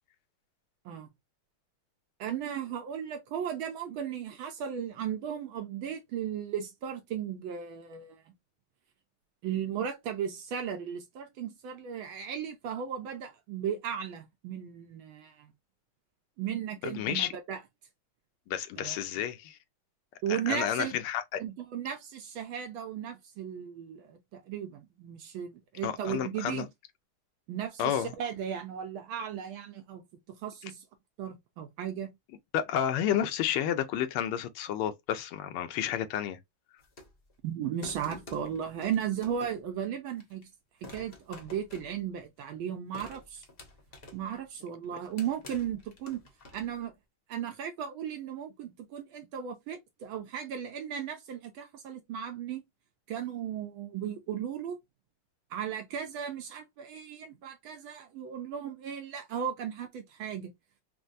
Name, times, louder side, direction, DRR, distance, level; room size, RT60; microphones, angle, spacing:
voice 1, 2.2-8.2 9.4-15.5 16.4-17.6 18.8-19.0 20.2-20.9 21.4-26.7 27.5-30.0 30.3-30.8 31.2-32.1 37.4-40.5 40.8-43.4 44.1-46.2 46.5-46.9 47.3-52.6 53.1-54.8 55.5-60.5, right 8 dB, 75° right, 1.4 m, -36 dB
voice 2, 16.8-17.3 18.5-19.6 20.3-21.4 25.8-26.6 27.8-28.1 32.5-36.4, left 10 dB, 90° left, 1.5 m, -31 dB
sound 1, 36.8-37.3 37.8-39.7 40.2-40.4 40.8-42.4 42.9-44.4 44.8-46.8, left 2 dB, 50° left, 0.6 m, -50 dB
4.4 x 2.0 x 2.5 m
omnidirectional pair, 2.4 m